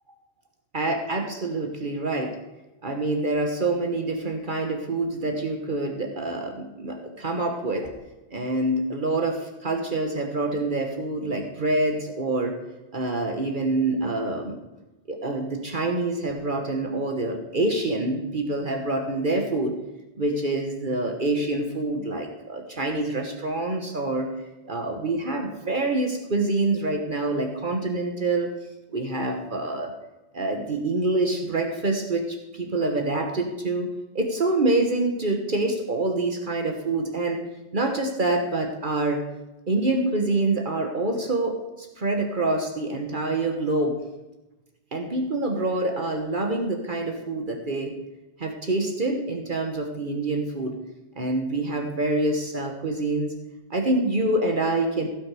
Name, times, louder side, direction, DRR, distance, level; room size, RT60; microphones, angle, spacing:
voice 1, 0.7-2.4 2.8-7.9 8.3-12.6 12.9-14.6 15.1-19.8 20.1-24.3 24.6-28.5 28.9-29.9 30.3-33.9 34.1-37.4 37.7-39.2 39.7-44.0 44.9-48.0 48.4-50.7 51.2-53.4 53.7-55.1, right 2 dB, 50° right, 3 dB, 1.4 m, -26 dB
16.5 x 6.1 x 4.9 m, 1.0 s
omnidirectional pair, 1.1 m